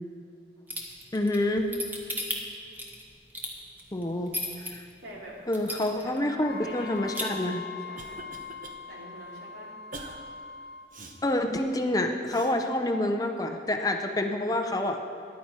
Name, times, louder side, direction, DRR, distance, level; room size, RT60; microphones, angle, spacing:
sound 1, 0.7-4.7 5.2-5.3 5.5-6.2 6.5-6.6 6.9-7.2, equal, 10° right, 1.2 m, -34 dB
voice 1, 1.1-1.7 3.9-4.3 4.7-4.8 5.5-7.6 11.2-15.0, left 1 dB, 20° left, 5 dB, 0.6 m, -27 dB
voice 2, 5.0-5.4 5.8-8.2 8.9-9.7, equal, 75° right, -4 dB, 3.0 m, -45 dB
Wind instrument woodwind instrument, 6.4-10.9, left 5 dB, 65° left, 0.5 m, -42 dB
Cough, 7.4-8.8 9.2-9.4 9.9-10.2 10.9-11.2 12.2-12.5, right 2 dB, 50° right, 1.0 m, -44 dB
14.0 x 10.5 x 4.4 m, 2.5 s
head